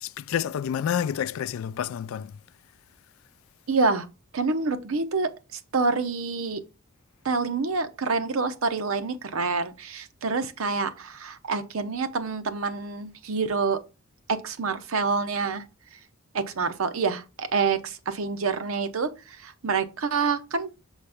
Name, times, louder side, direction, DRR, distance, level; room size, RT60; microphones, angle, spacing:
voice 1, 0.0-2.3, left 9 dB, 75° left, 0.3 m, -29 dB
voice 2, 3.7-4.1 4.3-6.6 7.2-13.8 14.3-15.6 16.3-20.8, right 4 dB, 90° right, 0.7 m, -27 dB
6.8 x 4.1 x 3.4 m
head